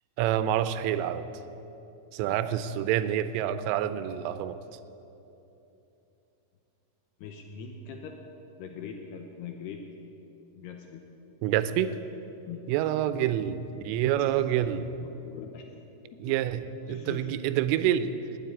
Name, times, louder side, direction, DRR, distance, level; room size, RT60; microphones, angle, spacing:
voice 1, 0.2-1.3 2.1-4.6 11.4-11.9 12.7-14.9 16.2-18.1, right 11 dB, 90° right, 12 dB, 3.2 m, -27 dB
voice 2, 7.2-8.2 8.6-9.8 10.6-11.0 12.4-12.7 15.0-15.6 16.1-16.3 16.9-17.6, left 7 dB, 75° left, 3 dB, 2.5 m, -42 dB
18.5 x 8.0 x 9.7 m, 2.9 s
omnidirectional pair, 5.7 m